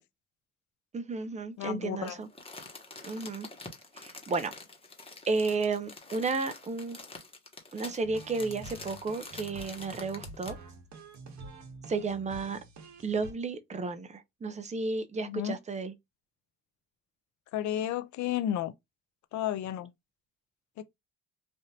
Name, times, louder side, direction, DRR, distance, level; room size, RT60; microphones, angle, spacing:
voice 1, 0.9-2.3 3.0-3.5 3.9-4.5 5.3-7.0 7.7-10.6 11.9-12.6 13.0-15.9, right 4 dB, 25° right, 0.6 m, -32 dB
voice 2, 1.6-2.2 15.2-15.6 17.5-18.7 19.3-19.9 20.8-20.9, left 11 dB, 70° left, 0.5 m, -32 dB
Crumpling crinkling, 2.0-10.7 11.1-11.2, left 3 dB, 20° left, 1.1 m, -47 dB
sound 1, 8.0-13.3, right 2 dB, 65° right, 1.2 m, -47 dB
3.3 x 2.6 x 2.7 m
cardioid pair, 90°, 30 cm